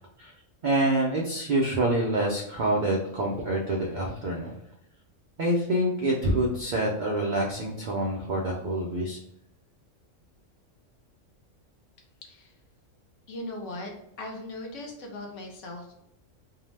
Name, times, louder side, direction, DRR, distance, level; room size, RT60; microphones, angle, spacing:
voice 1, 0.6-4.5 5.4-9.2, right 1 dB, 80° right, -2 dB, 0.4 m, -26 dB
voice 2, 12.2-12.6 13.3-13.9 14.2-16.0, left 1 dB, 70° left, 1 dB, 1.0 m, -38 dB
2.7 x 2.0 x 3.1 m, 0.79 s
omnidirectional pair, 1.4 m